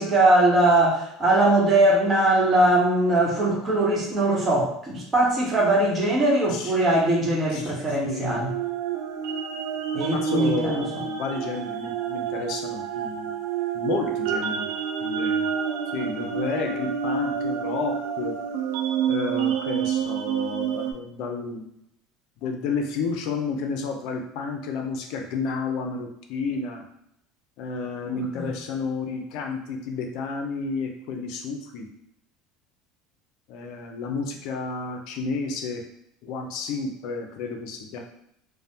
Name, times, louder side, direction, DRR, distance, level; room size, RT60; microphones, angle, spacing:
voice 1, 0.0-8.5 9.9-10.8 28.1-28.5, right 1 dB, 25° right, -3 dB, 1.0 m, -21 dB
voice 2, 8.0-8.5 10.1-13.4 13.7-14.7 15.0-15.5 15.9-18.4 19.1-21.7 22.4-26.8 27.6-31.9 33.5-35.8 36.2-38.0, left 4 dB, 65° left, 3 dB, 0.4 m, -31 dB
sound 1, 8.3-20.9, right 7 dB, 85° right, 0.4 m, -28 dB
3.1 x 2.1 x 2.7 m, 0.78 s
supercardioid pair, 115°, 0 cm